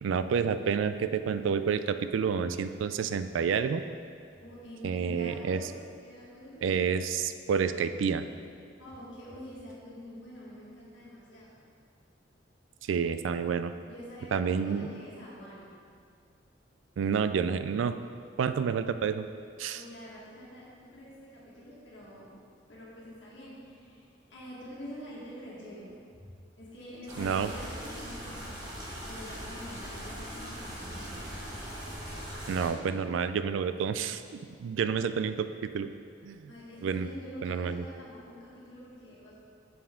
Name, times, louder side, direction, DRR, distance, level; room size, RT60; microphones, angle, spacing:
voice 1, 0.0-3.8 4.8-5.6 6.6-8.2 12.9-13.7 14.3-14.9 17.0-17.9 18.4-19.2 19.6-19.8 27.2-27.5 32.5-34.2 34.6-35.9 36.2-36.5 36.8-37.1 37.4-37.8, right 6 dB, 85° right, 11 dB, 0.3 m, -29 dB
voice 2, 4.4-5.7 6.0-6.7 8.8-11.6 13.9-15.7 19.7-22.4 22.7-26.3 26.6-28.6 29.0-31.3 36.5-39.4, equal, 75° left, -7 dB, 1.7 m, -46 dB
sound 1, 27.1-32.7, equal, 20° right, 1.2 m, -40 dB
6.9 x 5.6 x 3.7 m, 2.3 s
head